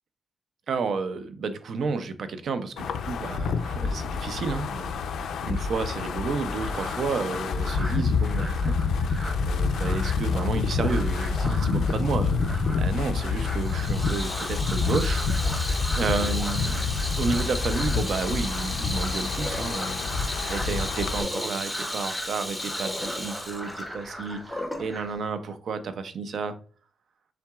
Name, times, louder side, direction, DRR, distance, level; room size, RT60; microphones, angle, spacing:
voice 1, 0.7-9.2 9.4-12.4 12.7-26.5, right 4 dB, 55° right, 10 dB, 0.5 m, -31 dB
Wind, 2.8-21.2, left 4 dB, 75° left, 0.4 m, -27 dB
sound 1, 6.5-25.2, right 1 dB, 15° right, 1.0 m, -40 dB
Water tap faucet / Sink (filling or washing), 13.6-24.9, left 1 dB, 5° left, 0.6 m, -34 dB
5.8 x 3.7 x 2.3 m, 0.42 s
wide cardioid pair, 170°, 0 cm